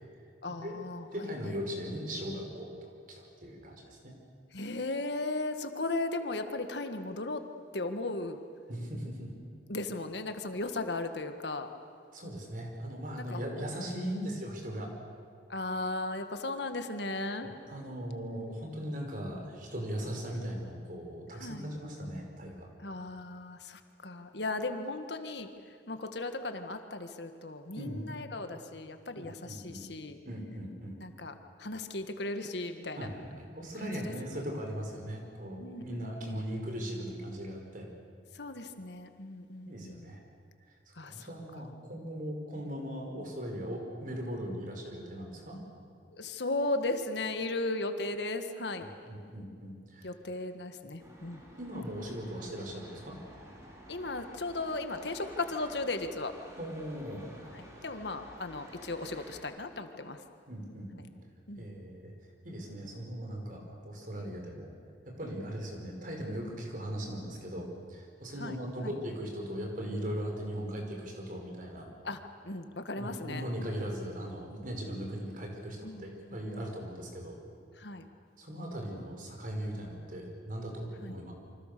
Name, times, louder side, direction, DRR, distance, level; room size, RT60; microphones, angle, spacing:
voice 1, 0.4-1.5 4.5-7.4 7.7-8.4 9.7-11.7 13.2-13.5 14.1-14.2 15.5-17.5 18.2-18.5 21.3-21.7 22.8-25.5 25.9-30.2 31.0-31.3 31.6-33.1 33.8-34.1 35.6-36.4 38.3-40.1 41.0-41.3 41.6-41.7 46.1-48.9 50.0-51.4 53.9-56.3 57.5-60.2 61.5-61.7 68.4-68.6 68.8-68.9 72.0-73.5 75.8-76.7 77.8-78.1 81.0-81.1, left 2 dB, 70° left, 7 dB, 1.7 m, -36 dB
voice 2, 1.1-4.2 8.7-9.3 12.1-14.9 17.4-22.7 27.7-28.1 29.2-29.8 30.2-31.0 32.9-37.9 39.7-40.2 40.9-45.6 49.1-50.1 51.6-53.2 56.6-57.2 60.5-61.1 61.6-62.1 62.4-64.7 65.0-71.9 73.0-77.4 78.4-81.3, equal, 50° right, 2 dB, 5.0 m, -39 dB
sound 1, 51.0-59.4, equal, 15° right, 4.6 m, -52 dB
28.0 x 25.0 x 6.8 m, 2.2 s
head